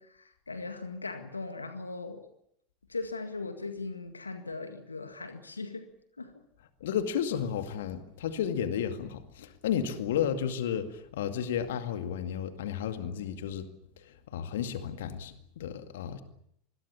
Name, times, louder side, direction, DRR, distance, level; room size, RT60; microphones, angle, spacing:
voice 1, 0.0-2.3 2.9-5.9 6.2-6.3, left 3 dB, 85° left, 1.9 m, -39 dB
voice 2, 6.8-13.7 14.0-16.2, left 8 dB, 65° left, 2.1 m, -33 dB
26.0 x 21.5 x 7.1 m
figure-of-eight pair, 80°, 0 cm